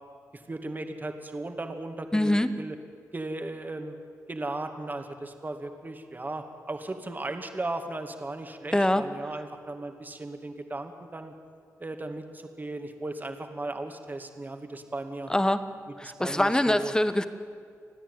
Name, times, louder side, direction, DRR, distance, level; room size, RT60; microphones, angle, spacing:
voice 1, 0.3-2.8 3.1-4.0 4.3-11.3 11.8-15.3 16.0-16.9, right 2 dB, 30° right, 5 dB, 2.2 m, -36 dB
voice 2, 2.1-2.6 8.7-9.1 15.3-15.7 16.0-17.3, left 1 dB, 10° left, 11 dB, 1.4 m, -24 dB
29.0 x 10.0 x 9.6 m, 2.2 s
supercardioid pair, 55°, 6 cm